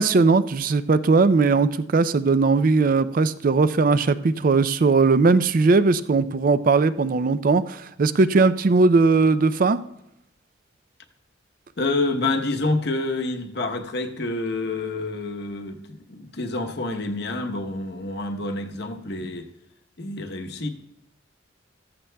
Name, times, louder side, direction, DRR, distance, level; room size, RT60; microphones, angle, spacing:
voice 1, 0.0-9.8, right 4 dB, 45° right, 0.4 m, -19 dB
voice 2, 11.8-19.5 20.0-20.7, left 2 dB, 55° left, 1.0 m, -28 dB
14.5 x 14.0 x 2.3 m
head